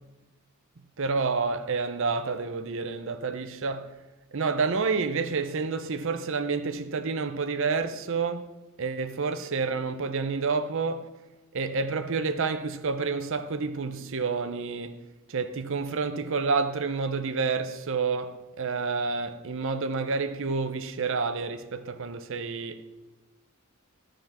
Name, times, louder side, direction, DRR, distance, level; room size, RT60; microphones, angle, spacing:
voice 1, 1.0-4.0 4.3-8.5 8.8-11.1 11.5-22.8, right 4 dB, 60° right, 0.7 m, -29 dB
13.0 x 5.1 x 6.0 m
head